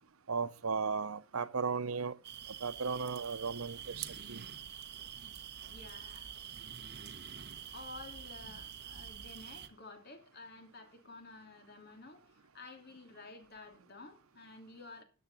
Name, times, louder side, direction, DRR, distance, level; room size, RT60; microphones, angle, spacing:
voice 1, 0.3-2.1 2.6-4.4, right 5 dB, 90° right, 0.9 m, -36 dB
sound 1, 2.2-9.7, right 8 dB, 50° right, 1.2 m, -46 dB
voice 2, 5.6-6.3 7.7-15.0, left 3 dB, 50° left, 2.9 m, -52 dB
14.0 x 8.6 x 4.1 m
head